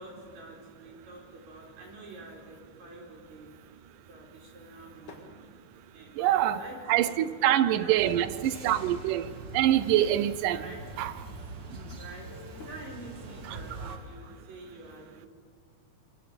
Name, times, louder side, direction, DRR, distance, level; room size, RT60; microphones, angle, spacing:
voice 1, 0.0-3.5 4.1-5.3 5.9-8.8 10.5-10.8 12.0-13.8 14.1-15.3, right 2 dB, 60° right, 5.7 m, -47 dB
Drawer open or close / Wood, 4.4-5.3 7.0-8.4 8.9-10.0 11.4-12.9, left 4 dB, 65° left, 3.5 m, -54 dB
voice 2, 6.2-11.1 13.4-13.6, right 12 dB, 85° right, 2.4 m, -26 dB
sound 1, 7.9-14.0, right 2 dB, 40° right, 2.1 m, -43 dB
26.5 x 23.5 x 5.3 m
omnidirectional pair, 3.7 m